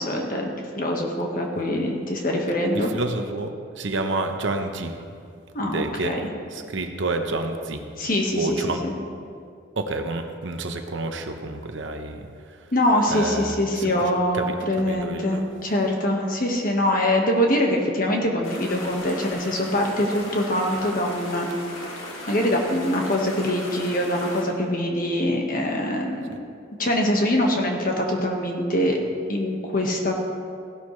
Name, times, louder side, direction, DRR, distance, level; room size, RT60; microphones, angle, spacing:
voice 1, 0.0-2.9 5.5-6.2 8.0-8.6 8.8-8.9 12.7-21.5 22.3-26.3 26.8-29.0 29.3-30.1, left 1 dB, 40° left, 1 dB, 1.5 m, -24 dB
voice 2, 2.7-3.5 3.8-4.9 5.6-6.2 6.5-7.8 8.4-8.8 9.8-12.3 13.1-15.4, right 2 dB, 65° right, 5 dB, 0.9 m, -29 dB
sound 1, 18.4-24.4, left 1 dB, 80° left, 2.0 m, -37 dB
15.5 x 12.0 x 3.2 m, 2.3 s
head